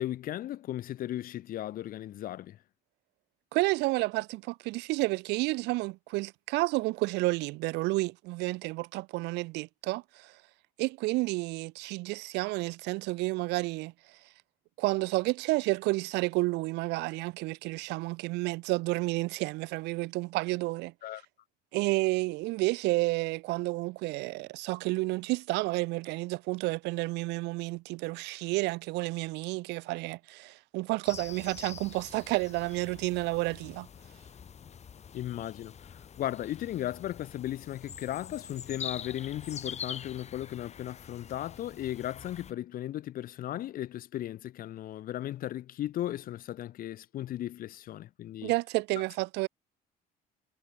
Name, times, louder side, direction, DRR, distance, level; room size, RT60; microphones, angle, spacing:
voice 1, 0.0-2.6 21.0-21.2 35.1-48.5 48.9-49.0, left 13 dB, 55° left, 0.7 m, -36 dB
voice 2, 3.5-10.3 10.8-13.9 14.8-20.9 21.7-33.9 48.4-49.5, right 22 dB, 90° right, 0.7 m, -30 dB
sound 1, 31.0-42.5, left 7 dB, 40° left, 3.2 m, -45 dB
cardioid pair, 110°, 17 cm